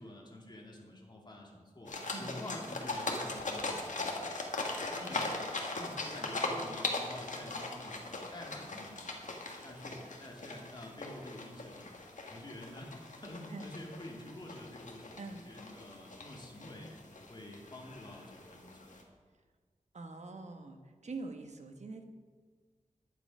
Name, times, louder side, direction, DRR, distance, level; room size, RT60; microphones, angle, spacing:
voice 1, 0.0-4.3 4.9-5.3 5.7-9.2 9.6-11.9 12.3-16.9 17.3-18.9, left 1 dB, 35° left, -1 dB, 2.5 m, -48 dB
sound 1, 1.9-19.0, left 2 dB, 70° left, 1.7 m, -40 dB
voice 2, 19.9-22.0, right 3 dB, 60° right, 5 dB, 1.2 m, -44 dB
11.0 x 9.7 x 5.4 m, 1.5 s
wide cardioid pair, 95°, 13 cm